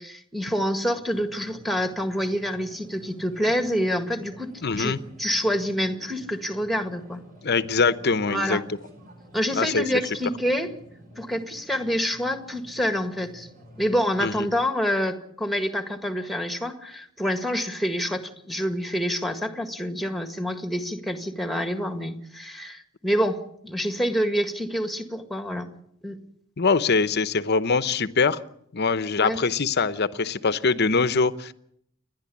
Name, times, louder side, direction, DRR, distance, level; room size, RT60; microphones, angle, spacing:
voice 1, 0.0-7.2 8.3-8.6 9.3-10.7 11.2-13.5 13.8-25.7 26.0-26.2 29.2-29.4, equal, ahead, 7 dB, 1.8 m, -27 dB
sound 1, 1.1-14.4, equal, 40° right, 5.3 m, -50 dB
voice 2, 4.6-5.0 7.4-8.6 9.6-9.8 14.2-14.3 26.6-28.4 28.7-31.5, left 4 dB, 50° left, 13 dB, 0.9 m, -23 dB
29.5 x 11.0 x 8.5 m, 0.73 s
head